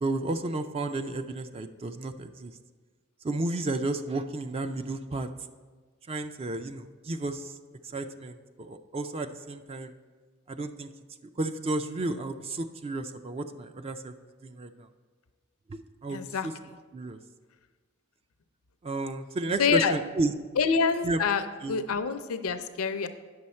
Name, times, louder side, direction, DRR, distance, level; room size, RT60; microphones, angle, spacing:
voice 1, 0.0-2.5 3.2-5.3 6.1-7.5 7.9-9.9 10.5-10.9 11.4-14.1 14.4-14.9 15.7-16.5 16.9-17.2 18.8-20.3 21.0-21.2 21.6-21.8, right 2 dB, 25° right, 9 dB, 0.3 m, -32 dB
voice 2, 16.1-16.5 19.6-19.9 20.6-23.1, left 5 dB, 90° left, 10 dB, 0.6 m, -26 dB
9.5 x 6.3 x 4.3 m, 1.4 s
head